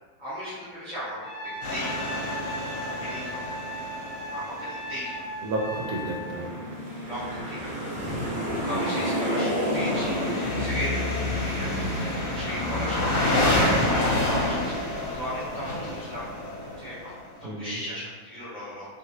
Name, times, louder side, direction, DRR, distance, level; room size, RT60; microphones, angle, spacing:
voice 1, 0.2-1.2 1.7-2.3 3.0-3.4 4.3-5.1 7.1-7.9 8.6-10.2 10.6-11.7 12.1-14.1 14.4-16.3 16.8-17.1 17.4-18.9, equal, 5° right, -14 dB, 0.8 m, -36 dB
Trumpet, 1.2-6.3, equal, 40° left, 0.9 m, -36 dB
sound 1, 1.6-5.5 9.6-17.3, left 1 dB, 65° left, 1.3 m, -28 dB
voice 2, 5.4-6.6 8.7-9.0 11.1-11.2 17.4-17.8, right 2 dB, 75° right, 0 dB, 1.1 m, -32 dB
sound 2, 5.6-12.0, equal, 45° right, 0.7 m, -30 dB
2.9 x 2.8 x 2.7 m, 1.4 s
omnidirectional pair, 1.6 m